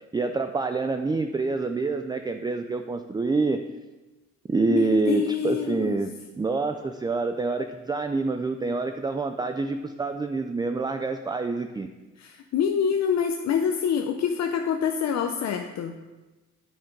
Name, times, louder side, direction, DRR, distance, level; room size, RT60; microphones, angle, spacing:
voice 1, 0.1-3.6 4.5-11.9, right 3 dB, 15° right, 8 dB, 0.4 m, -27 dB
voice 2, 4.7-5.9 12.2-16.0, left 7 dB, 60° left, 5 dB, 0.6 m, -26 dB
9.0 x 5.0 x 4.6 m, 1.2 s
cardioid pair, 90°, 30 cm